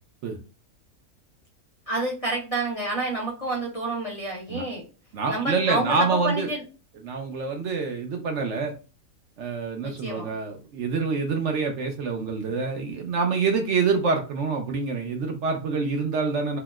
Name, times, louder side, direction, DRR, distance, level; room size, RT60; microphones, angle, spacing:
voice 1, 1.9-4.8 5.3-6.6 9.8-10.3, right 2 dB, 35° left, -3 dB, 0.7 m, -29 dB
voice 2, 5.1-6.5 7.0-8.7 9.4-16.6, right 4 dB, 65° right, 3 dB, 0.8 m, -26 dB
2.8 x 2.0 x 3.3 m, 0.34 s
omnidirectional pair, 1.5 m